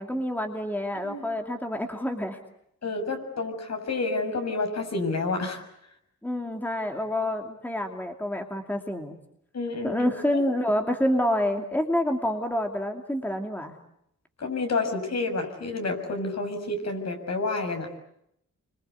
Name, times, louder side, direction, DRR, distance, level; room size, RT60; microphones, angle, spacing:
voice 1, 0.0-2.4 6.2-9.1 9.8-13.7, left 1 dB, 5° left, 4 dB, 2.7 m, -28 dB
voice 2, 2.8-5.6 9.5-10.1 14.4-17.9, left 3 dB, 60° left, 4 dB, 7.0 m, -29 dB
28.0 x 25.0 x 8.2 m, 0.77 s
wide cardioid pair, 110°, 30 cm